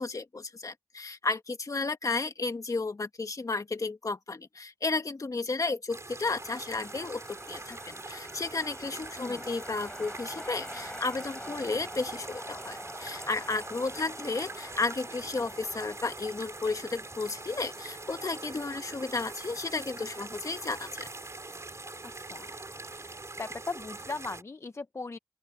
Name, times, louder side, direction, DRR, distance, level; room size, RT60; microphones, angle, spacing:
voice 1, 0.0-21.1, left 3 dB, 65° left, 1.7 m, -33 dB
sound 1, 5.9-24.4, right 2 dB, 50° right, 4.8 m, -43 dB
sound 2, 6.3-23.2, left 1 dB, 15° left, 7.9 m, -48 dB
sound 3, 14.6-24.0, right 3 dB, 65° right, 4.9 m, -54 dB
voice 2, 23.4-25.2, left 3 dB, 50° left, 0.6 m, -38 dB
open air
cardioid pair, 45°, 6 cm